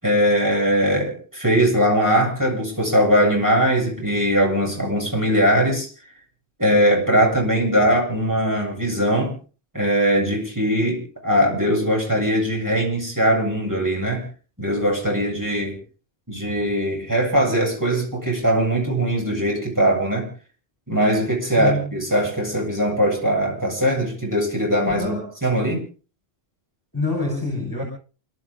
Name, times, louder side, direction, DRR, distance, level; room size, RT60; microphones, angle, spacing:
voice 1, 0.0-5.9 6.6-9.3 9.7-14.3 14.6-15.8 16.3-20.3 20.9-25.8, equal, 15° right, -2 dB, 8.1 m, -20 dB
voice 2, 21.6-21.9 24.8-25.3 26.9-27.8, left 2 dB, 20° left, 2 dB, 5.2 m, -26 dB
29.0 x 12.5 x 3.8 m, 0.38 s
omnidirectional pair, 1.1 m